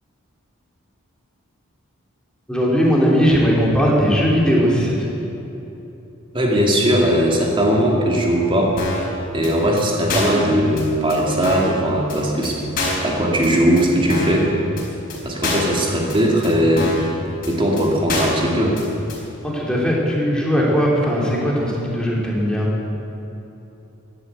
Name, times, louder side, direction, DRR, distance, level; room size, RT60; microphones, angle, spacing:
voice 1, 2.5-5.2 19.4-22.7, equal, 5° left, -4 dB, 2.9 m, -18 dB
voice 2, 6.3-8.7 9.3-12.6 13.0-14.5 15.2-16.9 17.5-18.8, equal, 25° right, -1 dB, 2.5 m, -18 dB
sound 1, 8.8-9.1 9.4-9.5 9.8-9.9 10.1-10.4 10.8-10.9 11.1-11.2 11.4-11.8 12.1-12.2 12.4-12.5 12.8-13.1 13.4-13.5 13.8-13.9 14.1-14.4 14.8-14.9 15.1-15.2 15.4-15.8 16.1-16.2 16.4-16.5 16.8-17.1 17.4-17.5 17.8-17.9 18.1-18.4 18.8-18.9 19.1-19.2, left 2 dB, 45° left, 4.2 m, -25 dB
14.5 x 11.0 x 8.3 m, 3.0 s
head